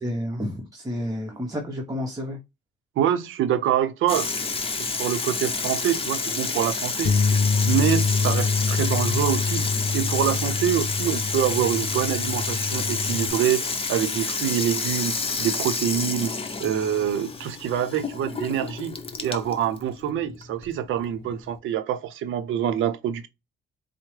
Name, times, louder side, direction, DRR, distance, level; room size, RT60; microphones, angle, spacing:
voice 1, 0.0-2.4, equal, 20° right, 0.9 m, -30 dB
voice 2, 3.0-4.3 4.8-7.1 7.7-9.7 9.9-13.6 13.9-16.3 16.6-18.9 19.2-23.3, right 10 dB, 80° right, 0.6 m, -25 dB
Water tap faucet / Sink (filling or washing), 4.1-21.6, left 4 dB, 30° left, 0.8 m, -29 dB
sound 1, 7.0-13.3, left 4 dB, 50° left, 0.4 m, -25 dB
4.4 x 2.1 x 3.1 m
cardioid pair, 90°, 20 cm